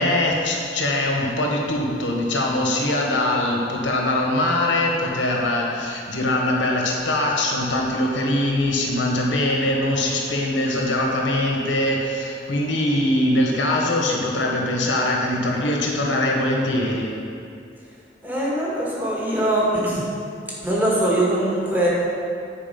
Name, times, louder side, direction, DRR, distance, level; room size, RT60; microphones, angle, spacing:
voice 1, 0.0-17.1, left 1 dB, 90° left, -1 dB, 1.4 m, -22 dB
voice 2, 18.2-20.1 20.6-21.9, right 1 dB, 10° right, -6 dB, 1.7 m, -22 dB
9.8 x 4.9 x 5.3 m, 2.5 s
head